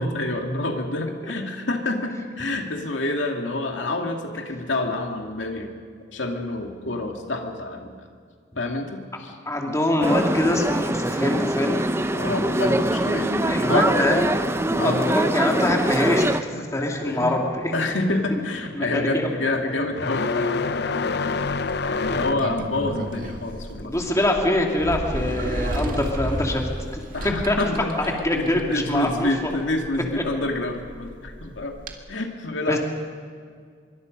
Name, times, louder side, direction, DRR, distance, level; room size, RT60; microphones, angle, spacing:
voice 1, 0.0-5.7 6.1-7.9 8.6-9.4 9.7-9.8 12.1-13.9 14.7-15.2 16.5-17.3 17.7-21.5 21.8-23.9 26.2-26.3 27.1-31.8 32.1-32.8, left 2 dB, 85° left, 3 dB, 2.4 m, -28 dB
voice 2, 9.5-11.9 13.5-14.3 14.8-17.7 18.7-19.3 21.2-21.3 22.1-22.3 23.8-26.6 27.5-27.6 28.2-29.5 30.2-30.3 32.7-32.8, left 1 dB, 15° left, 1 dB, 2.6 m, -24 dB
sound 1, 10.0-16.4, right 1 dB, 15° right, 0.7 m, -23 dB
sound 2, 16.4-23.8, left 4 dB, 60° left, 0.7 m, -30 dB
Sliding door, 21.4-31.9, right 1 dB, 50° right, 1.9 m, -33 dB
25.0 x 23.5 x 5.4 m, 2.1 s
head